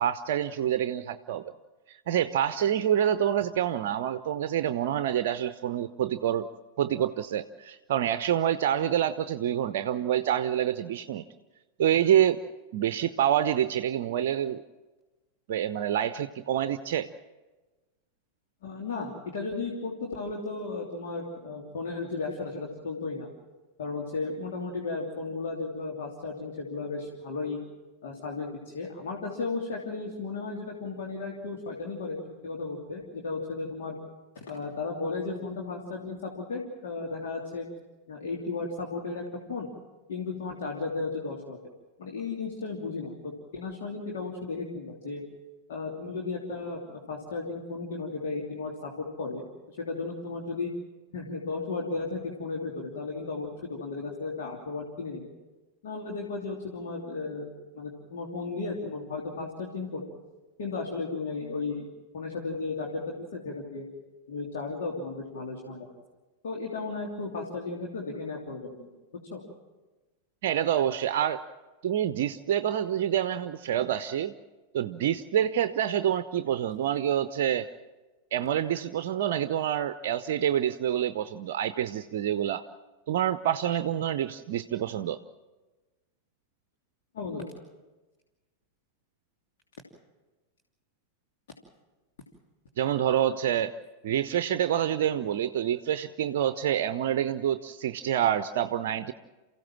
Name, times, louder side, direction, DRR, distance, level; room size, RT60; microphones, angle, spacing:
voice 1, 0.0-1.5 1.9-6.5 6.8-11.2 11.8-12.4 12.7-14.6 15.5-17.1 70.4-71.4 71.8-74.3 74.7-77.7 78.3-82.6 83.1-85.2 92.8-93.7 94.0-99.1, right 10 dB, 55° right, 12 dB, 0.7 m, -27 dB
voice 2, 18.6-23.3 23.8-27.6 28.0-28.5 28.7-34.0 34.5-37.7 38.1-39.7 40.1-41.6 42.0-45.2 45.7-50.7 51.1-55.3 55.8-57.5 57.7-60.1 60.6-61.9 62.1-63.8 64.3-65.9 66.4-68.9 69.3-69.4 87.1-87.4, left 3 dB, 60° left, -1 dB, 3.1 m, -35 dB
28.5 x 16.0 x 7.4 m, 1.2 s
figure-of-eight pair, 90°, 0 cm